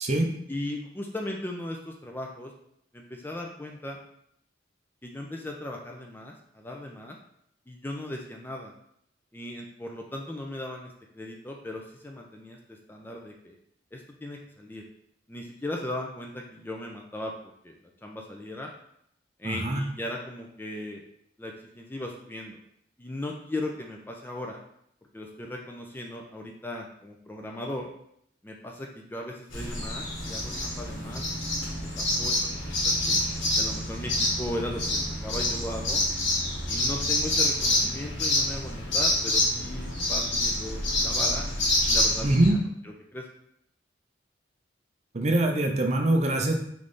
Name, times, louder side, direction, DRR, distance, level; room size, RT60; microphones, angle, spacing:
voice 1, 0.5-2.5 2.9-4.0 5.0-7.2 7.7-8.7 9.3-13.6 13.9-14.8 15.3-17.3 17.6-18.7 19.4-21.0 21.4-22.6 23.0-24.6 25.1-27.9 28.4-31.3 31.6-32.5 32.8-33.2 33.6-36.0 36.7-41.4 41.9-43.3, left 1 dB, 10° left, 0 dB, 0.4 m, -37 dB
voice 2, 19.4-19.8 42.2-42.6 45.1-46.6, right 1 dB, 35° right, 3 dB, 0.5 m, -23 dB
sound 1, 29.5-42.5, left 1 dB, 75° left, 1.3 m, -27 dB
3.5 x 3.2 x 3.8 m, 0.73 s
head